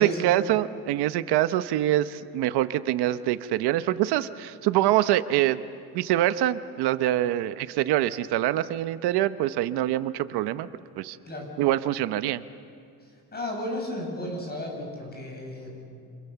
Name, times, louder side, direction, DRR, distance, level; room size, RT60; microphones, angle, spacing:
voice 1, 0.0-5.6 5.9-10.7 11.0-11.2 11.6-12.4, right 13 dB, 80° right, 12 dB, 0.9 m, -25 dB
voice 2, 13.3-15.9, equal, 25° left, 1 dB, 8.0 m, -33 dB
30.0 x 27.5 x 7.0 m, 2.4 s
cardioid pair, 155°, 38 cm